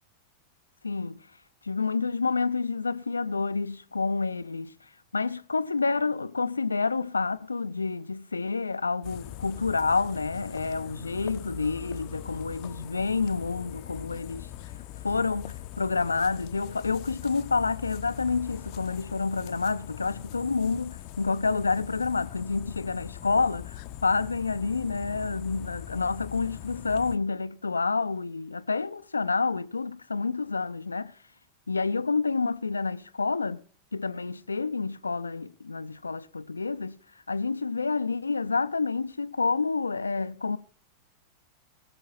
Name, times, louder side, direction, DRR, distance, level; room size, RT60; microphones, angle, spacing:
voice 1, 0.8-1.3 1.6-4.7 5.1-14.5 15.0-31.1 31.7-33.6 33.9-37.0 37.3-40.6, left 4 dB, 80° left, 0.5 m, -28 dB
sound 1, 9.0-27.2, left 13 dB, 45° left, 0.7 m, -42 dB
21.5 x 7.7 x 4.1 m
figure-of-eight pair, 90°, 0 cm